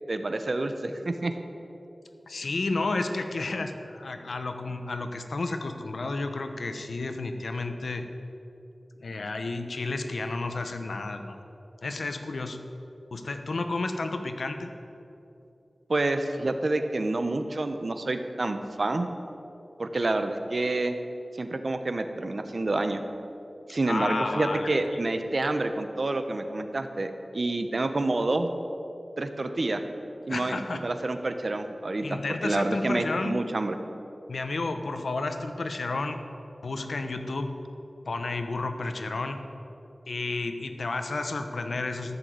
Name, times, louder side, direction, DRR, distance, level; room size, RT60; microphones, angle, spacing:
voice 1, 0.1-1.3 15.9-19.1 19.8-21.0 21.4-23.0 23.7-28.5 29.2-29.8 30.3-33.7, right 2 dB, 60° right, 8 dB, 1.1 m, -28 dB
voice 2, 2.3-8.0 9.0-11.4 11.8-12.6 13.1-14.7 23.8-24.7 30.3-30.8 32.0-33.3 34.3-36.2 36.6-37.5 38.1-39.4 40.1-42.2, left 3 dB, 90° left, 7 dB, 1.0 m, -31 dB
14.0 x 7.0 x 9.3 m, 2.9 s
wide cardioid pair, 55°, 0 cm